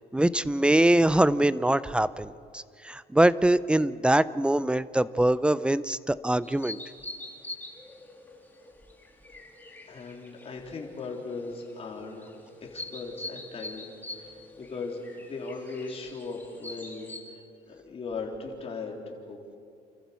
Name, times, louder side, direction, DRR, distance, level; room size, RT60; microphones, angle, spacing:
voice 1, 0.0-6.8, right 1 dB, 5° right, 17 dB, 0.5 m, -23 dB
sound 1, 6.4-17.2, left 2 dB, 10° left, 3.3 m, -44 dB
voice 2, 9.9-12.3 12.6-17.4 17.7-19.4, left 3 dB, 35° left, -1 dB, 3.8 m, -38 dB
28.5 x 14.5 x 7.0 m, 2.4 s
cardioid pair, 110°, 17 cm